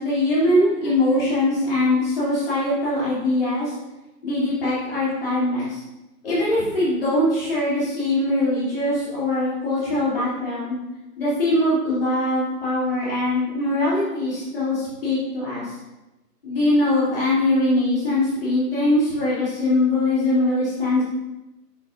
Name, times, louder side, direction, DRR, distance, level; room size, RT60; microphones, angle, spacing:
voice 1, 0.0-3.8 4.2-5.8 6.2-10.8 11.2-15.8 16.4-21.0, left 1 dB, 35° left, -10 dB, 2.7 m, -22 dB
9.0 x 8.4 x 2.6 m, 1.0 s
figure-of-eight pair, 155°, 49 cm